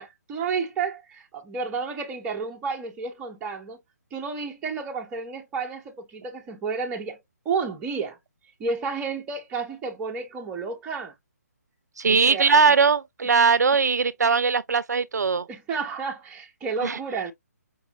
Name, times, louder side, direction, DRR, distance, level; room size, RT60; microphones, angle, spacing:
voice 1, 0.0-3.8 4.1-8.2 8.6-11.1 12.1-12.7 13.2-13.3 15.5-17.3, right 5 dB, 15° right, 0.7 m, -31 dB
voice 2, 12.0-15.5 16.8-17.0, right 5 dB, 80° right, 0.4 m, -20 dB
5.2 x 2.1 x 2.8 m
figure-of-eight pair, 150°, 9 cm